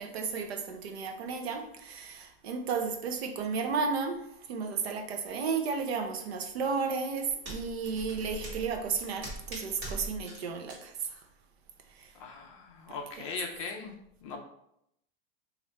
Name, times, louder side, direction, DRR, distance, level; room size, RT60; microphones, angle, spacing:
voice 1, 0.0-4.2 4.5-11.2 12.0-12.1, right 5 dB, 80° right, 6 dB, 0.8 m, -33 dB
sound 1, 6.9-10.4 10.7-10.8, right 2 dB, 40° right, 1.4 m, -42 dB
voice 2, 12.1-13.9 14.2-14.4, left 5 dB, 35° left, 3 dB, 0.4 m, -39 dB
3.3 x 2.6 x 4.1 m, 0.78 s
supercardioid pair, 170°, 31 cm